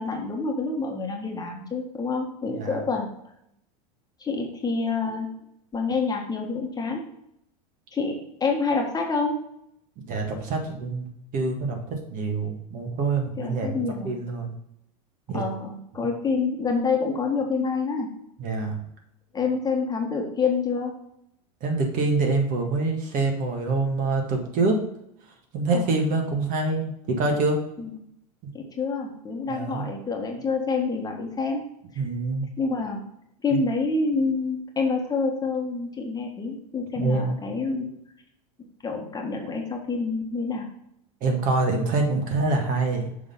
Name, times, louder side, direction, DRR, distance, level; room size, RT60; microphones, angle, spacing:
voice 1, 0.0-3.1 4.2-5.3 5.7-7.1 7.9-9.4 13.4-14.1 15.3-18.1 19.3-20.9 25.7-25.9 27.8-28.0 28.5-31.6 31.9-32.0 32.6-33.0 33.4-37.9 38.8-40.7, left 4 dB, 20° left, 1 dB, 1.5 m, -27 dB
voice 2, 2.5-2.8 10.1-11.1 11.3-13.8 14.0-14.5 15.3-15.4 18.4-18.8 21.6-24.8 25.5-27.6 29.5-29.9 32.0-32.5 37.0-37.4 41.2-43.1, right 3 dB, 45° right, 2 dB, 1.8 m, -25 dB
7.0 x 3.7 x 5.6 m, 0.77 s
hypercardioid pair, 110°, 19 cm